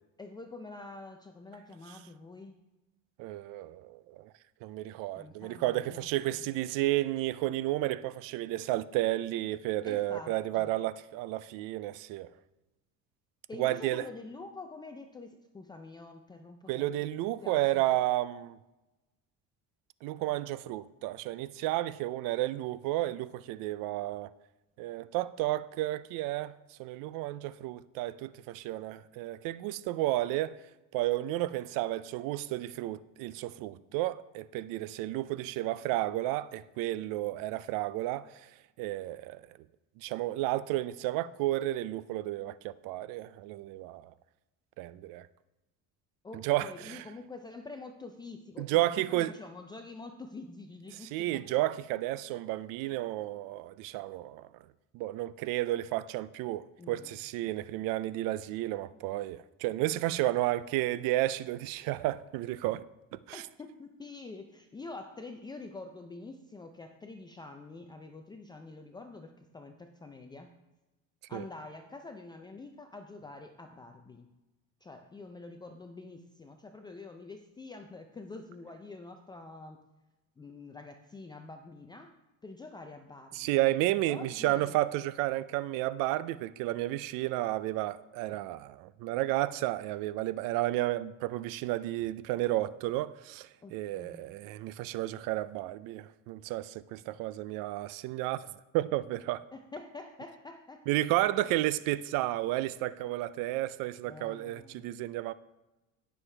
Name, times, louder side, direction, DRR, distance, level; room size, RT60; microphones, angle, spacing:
voice 1, 0.2-2.6 5.2-6.1 6.3-6.4 9.9-10.7 13.5-17.8 46.2-51.4 56.8-57.2 63.3-70.5 71.3-74.3 74.8-79.8 80.4-82.1 82.4-83.6 84.0-84.8 93.6-94.3 99.5-101.0 104.0-104.9, left 3 dB, 15° left, 0.4 m, -46 dB
voice 2, 3.2-4.3 4.6-12.3 13.6-14.0 16.7-18.6 20.0-24.3 24.8-30.6 30.9-38.4 38.8-39.4 40.0-44.1 44.8-45.3 46.4-47.0 48.6-49.3 51.0-54.5 54.9-62.8 63.3-63.4 71.3-71.4 83.3-98.5 98.7-99.4 100.9-105.3, right 16 dB, 85° right, 0.5 m, -32 dB
17.0 x 6.5 x 3.3 m
cardioid pair, 155°, 33 cm